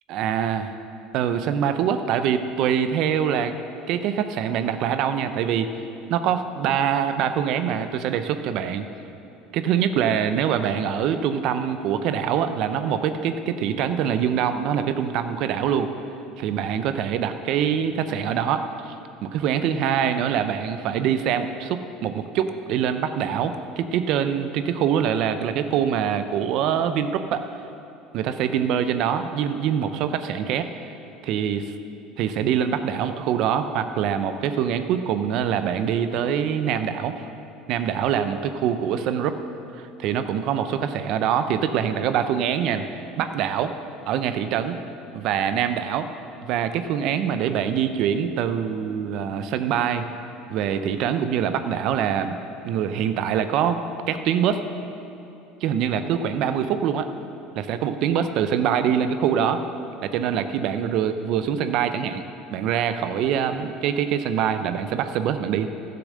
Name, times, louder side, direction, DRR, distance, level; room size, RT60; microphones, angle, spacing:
voice 1, 0.1-0.7 1.1-3.5 3.9-5.7 6.1-8.9 9.5-15.9 16.4-18.9 19.2-27.4 28.1-30.7 31.2-31.7 32.2-37.3 37.7-39.4 39.7-42.9 43.1-43.7 44.1-44.8 45.1-46.1 46.4-50.1 50.5-52.4 52.6-54.6 55.6-57.1 57.6-59.6 60.0-62.2 62.5-65.7, right 8 dB, 60° right, 9 dB, 0.6 m, -24 dB
11.5 x 6.8 x 6.4 m, 2.8 s
supercardioid pair, 115°, 0 cm